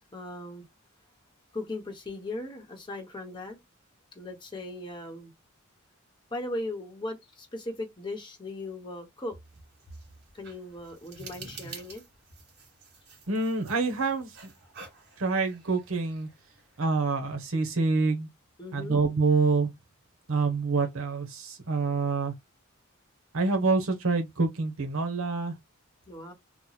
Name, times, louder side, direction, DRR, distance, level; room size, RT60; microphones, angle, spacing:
voice 1, 0.1-0.6 1.5-3.6 4.1-5.3 6.3-9.4 10.3-12.0 18.6-19.0 26.1-26.3, left 2 dB, 20° left, 1.0 m, -38 dB
sound 1, 9.5-16.9, right 4 dB, 55° right, 1.5 m, -49 dB
voice 2, 13.3-14.5 15.2-16.3 16.8-18.3 18.7-19.7 20.3-22.3 23.3-25.6, right 3 dB, 75° right, 0.9 m, -27 dB
3.0 x 2.2 x 4.0 m
head